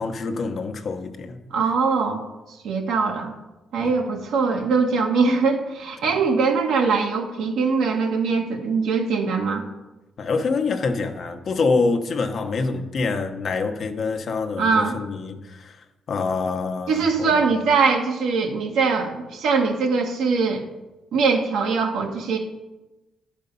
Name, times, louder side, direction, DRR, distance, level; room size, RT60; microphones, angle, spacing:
voice 1, 0.0-1.4 3.8-3.9 10.2-15.8 16.1-17.4, left 4 dB, 55° left, 5 dB, 1.0 m, -26 dB
voice 2, 1.5-2.2 2.5-3.3 3.7-9.6 14.6-15.0 16.9-20.6 21.1-22.4, right 4 dB, 80° right, 2 dB, 1.5 m, -22 dB
10.5 x 5.2 x 5.4 m, 1.0 s
cardioid pair, 90°, 0 cm